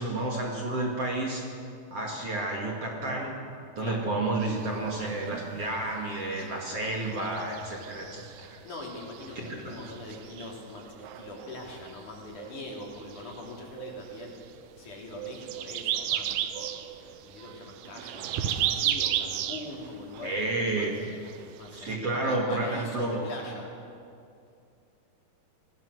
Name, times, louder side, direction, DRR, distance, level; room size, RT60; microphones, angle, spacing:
voice 1, 0.0-1.4 1.9-3.4 3.8-8.6 9.4-9.8 20.2-20.9 21.7-23.2, right 2 dB, 45° right, -1 dB, 2.8 m, -31 dB
sound 1, 4.4-22.0, right 11 dB, 85° right, 2.8 m, -36 dB
voice 2, 8.6-14.4 14.8-20.9 21.5-23.7, left 2 dB, 55° left, -1 dB, 4.4 m, -43 dB
sound 2, 16.1-21.2, right 5 dB, 65° right, 2.2 m, -41 dB
25.5 x 18.0 x 6.3 m, 2.4 s
omnidirectional pair, 4.5 m